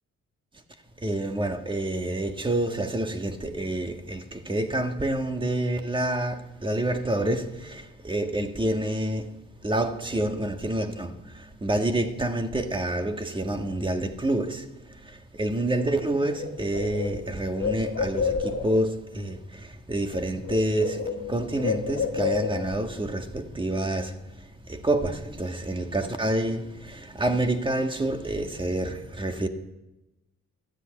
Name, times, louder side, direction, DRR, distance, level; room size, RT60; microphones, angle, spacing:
voice 1, 1.0-21.0 21.3-29.5, right 1 dB, 15° right, 1.8 m, -28 dB
Bird, 16.0-16.1 16.3-18.9 19.9-20.2 20.4-22.9, left 6 dB, 60° left, 2.1 m, -30 dB
13.5 x 9.8 x 9.0 m
cardioid pair, 90°, 30 cm